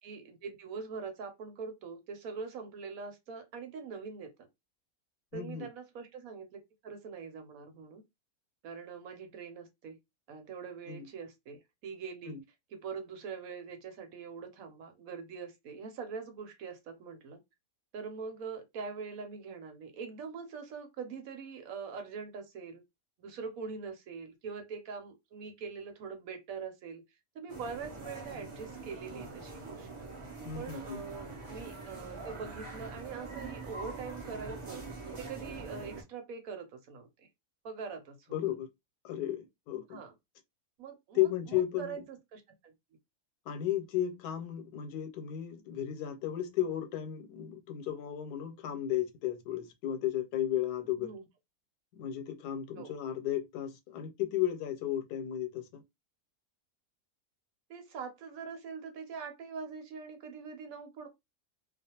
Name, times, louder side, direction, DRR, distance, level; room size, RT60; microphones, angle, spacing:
voice 1, 0.0-4.3 5.3-8.0 8.6-10.0 10.3-12.4 12.7-17.4 17.9-22.8 23.2-27.0 27.3-30.1 30.6-34.8 35.2-37.3 37.6-38.3 39.9-40.1 40.8-42.7 50.9-51.3 52.8-52.9 57.7-61.1, right 5 dB, 70° right, 1.0 m, -43 dB
voice 2, 5.3-5.7 10.9-11.1 12.3-12.4 30.4-31.0 38.3-38.7 39.0-40.0 41.1-42.0 43.5-51.1 51.9-55.8, left 11 dB, 85° left, 1.2 m, -34 dB
sound 1, 27.5-36.0, right 3 dB, 50° right, 0.3 m, -44 dB
2.4 x 2.3 x 2.8 m
omnidirectional pair, 1.7 m